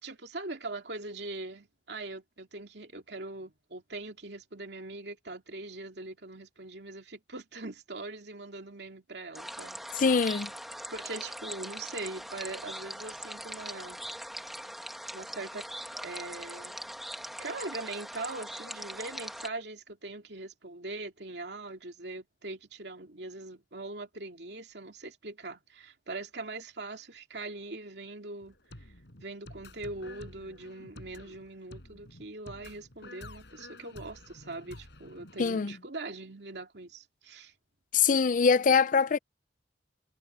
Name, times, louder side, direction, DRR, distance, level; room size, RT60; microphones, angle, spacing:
voice 1, 0.0-10.2 10.9-14.0 15.1-15.6 16.0-16.8 17.4-28.6 29.2-37.5, right 2 dB, 65° right, 2.9 m, -41 dB
sound 1, 9.3-19.5, equal, ahead, 1.6 m, -41 dB
voice 2, 9.9-10.5 35.4-35.7 37.9-39.2, left 5 dB, 45° left, 0.5 m, -23 dB
sound 2, 28.4-35.5, left 1 dB, 75° left, 4.9 m, -50 dB
head